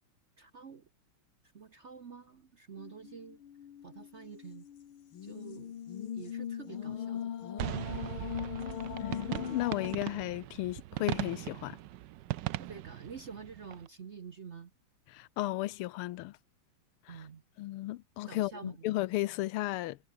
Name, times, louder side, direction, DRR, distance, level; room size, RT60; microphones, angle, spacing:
voice 1, 0.4-0.9 1.5-3.4 3.8-4.7 5.2-5.7 6.1-7.3 12.6-14.7 17.1-17.4 18.3-19.2, right 6 dB, 50° right, 0.9 m, -48 dB
sound 1, 2.8-10.0, left 9 dB, 75° left, 2.3 m, -40 dB
sound 2, 7.6-13.9, right 14 dB, 70° right, 1.1 m, -39 dB
voice 2, 9.0-11.8 15.1-16.4 17.1-17.2 17.6-20.0, left 17 dB, 90° left, 1.6 m, -34 dB
omnidirectional pair, 2.4 m